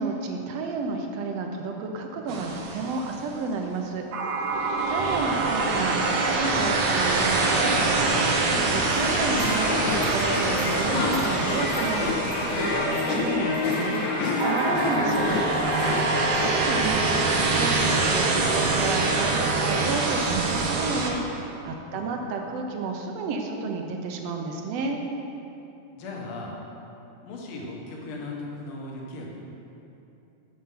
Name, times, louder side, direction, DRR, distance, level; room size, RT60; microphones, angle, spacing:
voice 1, 0.0-4.1 4.5-15.3 16.1-25.0, right 3 dB, 70° right, 3 dB, 1.7 m, -31 dB
sound 1, 2.3-3.3 4.1-13.6 14.4-21.1, right 3 dB, 85° right, 2.4 m, -25 dB
voice 2, 4.9-5.2 15.9-16.6 21.9-22.1 26.0-26.6 27.2-29.3, left 2 dB, 55° left, -2 dB, 1.9 m, -38 dB
sound 2, 8.9-17.0, left 2 dB, 85° left, 2.7 m, -28 dB
7.5 x 7.2 x 5.7 m, 2.9 s
omnidirectional pair, 3.3 m